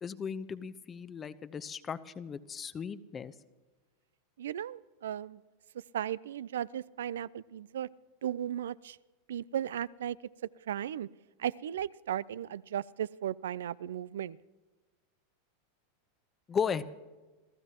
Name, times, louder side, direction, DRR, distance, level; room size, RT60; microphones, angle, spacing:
voice 1, 0.0-3.3 16.5-16.8, left 6 dB, 25° left, 13 dB, 0.8 m, -36 dB
voice 2, 4.4-5.4 5.9-7.9 8.2-9.0 9.3-10.2 10.7-11.1 11.4-14.4, right 10 dB, 80° right, 21 dB, 0.4 m, -36 dB
28.0 x 15.0 x 2.9 m, 1.2 s
hypercardioid pair, 105°, 0 cm